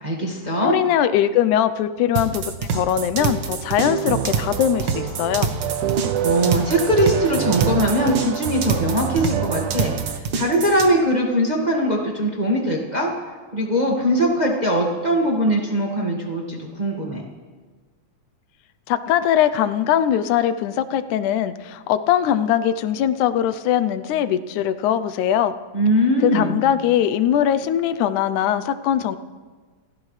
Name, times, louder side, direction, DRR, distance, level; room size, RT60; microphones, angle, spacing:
voice 1, 0.0-0.8 6.2-9.9 10.3-13.1 13.5-17.2 25.7-26.6, equal, 20° right, -2 dB, 1.4 m, -21 dB
voice 2, 0.6-5.5 18.9-25.5 26.2-29.2, left 10 dB, 85° left, 12 dB, 2.1 m, -21 dB
sound 1, 2.2-10.9, right 5 dB, 60° right, 1.2 m, -26 dB
sound 2, 3.2-10.2, right 11 dB, 90° right, 2.2 m, -27 dB
29.0 x 15.0 x 3.2 m, 1.4 s
omnidirectional pair, 3.4 m